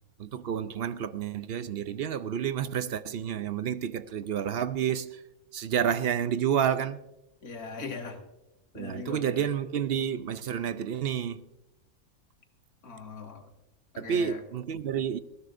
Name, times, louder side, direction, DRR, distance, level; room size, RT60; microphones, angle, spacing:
voice 1, 0.2-5.2 5.5-7.0 8.7-11.4 14.0-15.2, right 8 dB, 60° right, 0.6 m, -30 dB
voice 2, 7.4-8.2 8.7-9.5 12.8-13.5 13.9-14.4, left 4 dB, 90° left, 2.3 m, -40 dB
19.5 x 17.5 x 2.6 m
omnidirectional pair, 1.5 m